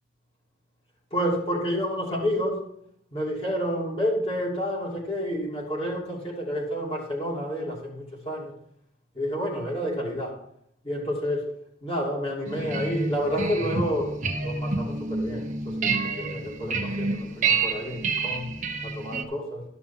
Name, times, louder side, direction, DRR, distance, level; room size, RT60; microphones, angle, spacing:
voice 1, 1.1-2.6 3.1-8.5 9.1-10.4 10.8-11.5 11.8-18.5 18.8-19.6, equal, 30° left, -3 dB, 2.7 m, -29 dB
sound 1, 12.4-19.2, right 4 dB, 40° right, 1.1 m, -28 dB
12.5 x 6.0 x 5.7 m, 0.72 s
head